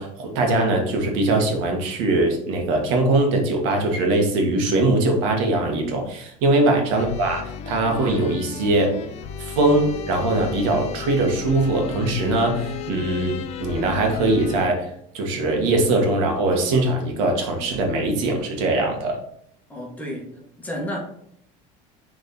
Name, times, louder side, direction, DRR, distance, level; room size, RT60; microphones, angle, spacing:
voice 1, 0.0-9.0 9.4-19.2, right 2 dB, 80° right, 2 dB, 1.7 m, -21 dB
voice 2, 6.5-6.8 19.7-21.0, equal, 10° left, -2 dB, 1.8 m, -33 dB
sound 1, 6.9-14.7, left 7 dB, 40° left, 0.5 m, -34 dB
6.7 x 3.9 x 4.2 m, 0.70 s
cardioid pair, 150°, 16 cm